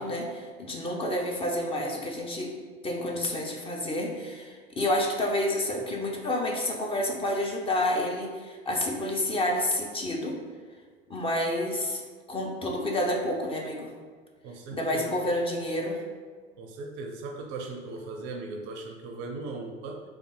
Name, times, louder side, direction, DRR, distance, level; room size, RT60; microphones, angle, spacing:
voice 1, 0.0-2.5 2.8-10.4 11.1-12.0 12.3-13.9 14.7-16.0, left 1 dB, 15° left, -1 dB, 0.5 m, -29 dB
voice 2, 14.4-15.1 16.6-20.0, right 3 dB, 40° right, 3 dB, 0.5 m, -38 dB
3.2 x 2.4 x 4.1 m, 1.5 s
figure-of-eight pair, 75°, 31 cm